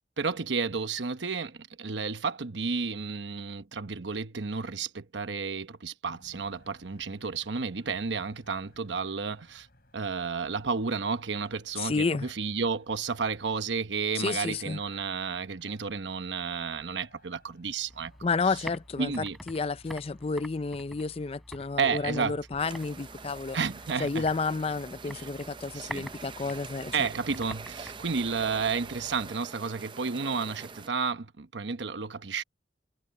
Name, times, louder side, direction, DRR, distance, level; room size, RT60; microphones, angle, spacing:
voice 1, 0.2-9.7 9.9-18.1 18.5-18.6 19.0-19.4 21.8-22.4 23.5-24.2 25.0-25.3 25.7-26.1 26.9-32.4, right 5 dB, 80° right, 1.0 m, -32 dB
sound 1, 6.1-19.9, left 2 dB, 55° left, 4.6 m, -61 dB
voice 2, 11.8-12.3 14.2-14.8 18.2-23.6 24.0-26.9, left 4 dB, 35° left, 0.4 m, -31 dB
sound 2, 17.9-29.3, equal, ahead, 4.6 m, -48 dB
sound 3, 22.6-30.9, right 5 dB, 25° right, 0.5 m, -45 dB
head